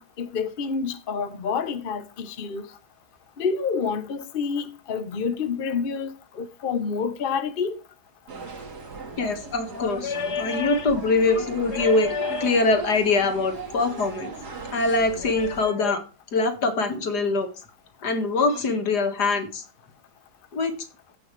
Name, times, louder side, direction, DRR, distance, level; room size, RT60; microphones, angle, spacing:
voice 1, 0.0-2.7 3.4-7.8, left 5 dB, 40° left, 0.9 m, -28 dB
sound 1, 8.3-15.6, right 3 dB, 85° right, 2.4 m, -38 dB
voice 2, 9.2-14.3 14.7-16.0 16.3-17.5 18.0-19.6 20.5-20.7, left 3 dB, 85° left, 2.3 m, -23 dB
16.0 x 5.8 x 3.2 m
omnidirectional pair, 1.7 m